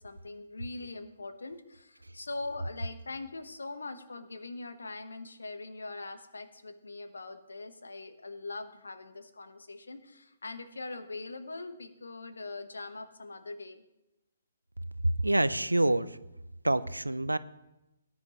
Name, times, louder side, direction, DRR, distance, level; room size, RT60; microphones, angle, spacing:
voice 1, 0.0-13.8, left 3 dB, 70° left, 10 dB, 1.1 m, -42 dB
voice 2, 15.0-16.2 16.6-17.4, right 1 dB, 85° right, 16 dB, 0.5 m, -26 dB
18.0 x 9.5 x 3.0 m, 0.95 s
figure-of-eight pair, 130°, 0 cm